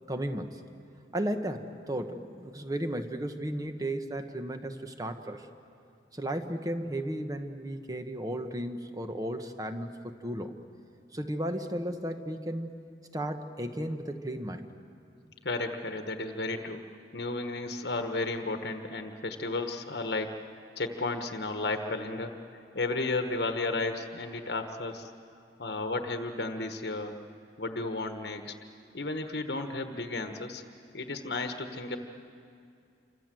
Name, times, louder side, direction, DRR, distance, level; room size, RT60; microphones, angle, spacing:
voice 1, 0.1-0.6 1.1-5.5 6.1-10.5 11.1-12.8 13.1-14.7, right 1 dB, 20° right, 7 dB, 1.2 m, -34 dB
voice 2, 15.4-16.8 17.1-20.4 20.8-22.3 22.7-25.1 25.6-27.1 27.6-28.5 28.9-30.6 30.9-32.0, left 2 dB, 65° left, 6 dB, 1.3 m, -33 dB
28.0 x 25.0 x 7.7 m, 2.4 s
head